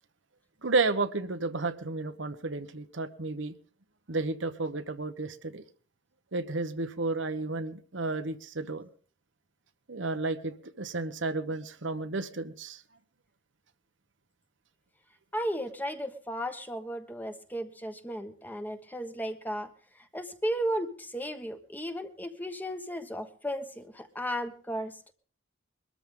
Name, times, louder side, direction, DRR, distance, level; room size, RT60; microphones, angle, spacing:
voice 1, 0.6-3.5 4.1-5.6 6.3-8.9 9.9-12.8, right 3 dB, 70° right, 9 dB, 1.1 m, -32 dB
voice 2, 15.3-19.7 20.1-24.9, equal, 10° left, 7 dB, 1.2 m, -35 dB
22.0 x 13.5 x 3.8 m, 0.41 s
head